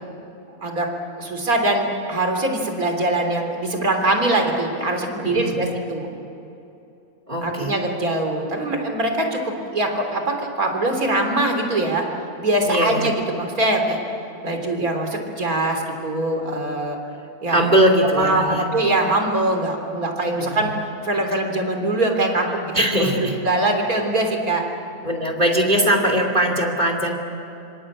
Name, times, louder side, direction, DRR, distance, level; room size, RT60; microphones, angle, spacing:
voice 1, 1.2-6.1 7.4-12.0 12.4-14.0 14.4-17.0 17.4-17.6 18.1-20.7 21.0-22.7 23.0-23.1 23.4-24.6, right 2 dB, 75° right, 4 dB, 4.0 m, -22 dB
voice 2, 5.2-5.8 7.3-7.7 12.6-13.1 17.5-18.7 20.3-20.7 22.7-23.4 25.0-27.2, equal, 30° right, 3 dB, 3.1 m, -20 dB
26.0 x 25.5 x 8.8 m, 2.8 s
omnidirectional pair, 1.5 m